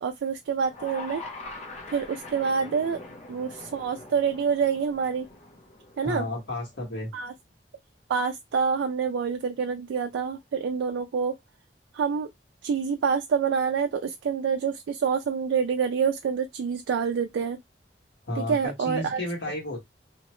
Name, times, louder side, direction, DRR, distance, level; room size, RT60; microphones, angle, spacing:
voice 1, 0.0-1.2 1.9-3.0 3.3-5.3 6.0-6.3 7.1-7.3 8.1-11.4 11.9-12.3 12.6-17.6 18.4-19.2, right 6 dB, 90° right, 0.3 m, -27 dB
sound 1, 0.7-6.9, left 2 dB, 40° left, 0.6 m, -43 dB
voice 2, 6.0-7.1 18.3-19.8, left 1 dB, 75° left, 1.3 m, -32 dB
2.8 x 2.0 x 3.0 m
head